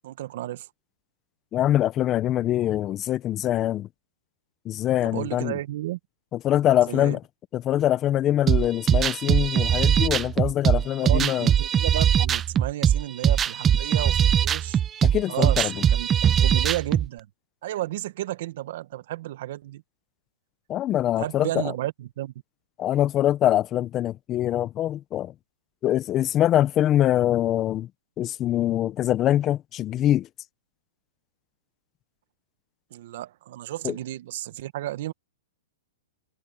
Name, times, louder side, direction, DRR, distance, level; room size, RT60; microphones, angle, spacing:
voice 1, 0.0-0.7 5.0-6.0 6.9-7.2 11.0-14.8 15.3-17.3 17.6-19.8 21.2-22.3 32.9-35.1, right 14 dB, 60° right, 1.4 m, -32 dB
voice 2, 1.5-3.9 4.6-5.6 6.3-7.2 7.5-11.5 15.0-15.7 20.7-21.6 22.8-25.3 25.8-27.9 28.2-30.3 33.8-34.0, left 12 dB, 25° left, 0.7 m, -23 dB
sound 1, 8.5-17.1, right 9 dB, 20° right, 0.4 m, -21 dB
hypercardioid pair, 140°, 0 cm